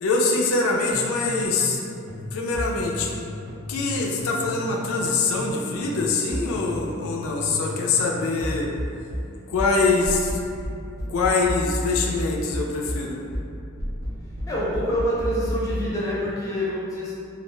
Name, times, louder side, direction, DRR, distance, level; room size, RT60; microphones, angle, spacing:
voice 1, 0.0-1.8 2.3-3.1 3.7-8.7 9.5-10.4 11.1-13.2, left 3 dB, 85° left, -1 dB, 0.3 m, -24 dB
sound 1, 0.9-5.6 5.8-15.9, equal, 80° right, 0.9 m, -32 dB
voice 2, 14.5-17.1, equal, 15° left, -8 dB, 0.5 m, -26 dB
2.4 x 2.1 x 3.1 m, 2.6 s
head